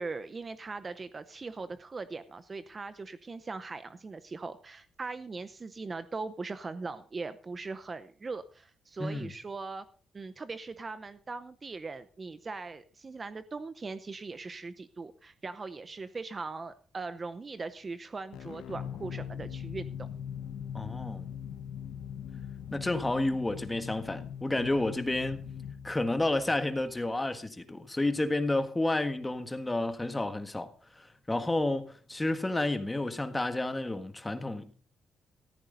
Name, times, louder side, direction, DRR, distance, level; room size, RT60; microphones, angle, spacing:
voice 1, 0.0-9.9 10.1-20.1, right 3 dB, 25° right, 0.8 m, -40 dB
voice 2, 9.0-9.3 20.7-21.3 22.7-25.4 25.8-30.7 31.0-34.7, left 2 dB, 10° left, 1.5 m, -30 dB
sound 1, 18.3-27.0, left 8 dB, 80° left, 1.0 m, -41 dB
14.5 x 14.0 x 3.9 m
cardioid pair, 135°, 0 cm